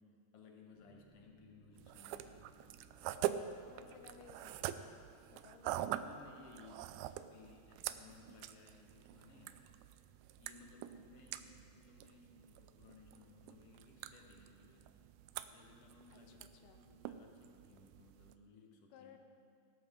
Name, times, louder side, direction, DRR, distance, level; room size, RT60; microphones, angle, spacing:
voice 1, 0.0-2.5 3.8-4.5 5.6-9.6 10.0-10.1 10.4-14.9 15.5-19.2, left 4 dB, 55° left, 1 dB, 1.6 m, -61 dB
sound 1, 0.7-6.7, left 1 dB, 50° right, 1.0 m, -68 dB
sound 2, 1.8-18.4, right 12 dB, 85° right, 2.4 m, -45 dB
voice 2, 3.7-4.9 5.3-6.1 16.1-16.8 18.9-19.2, left 7 dB, 80° left, 6 dB, 2.1 m, -60 dB
17.5 x 13.5 x 3.7 m, 2.3 s
omnidirectional pair, 4.4 m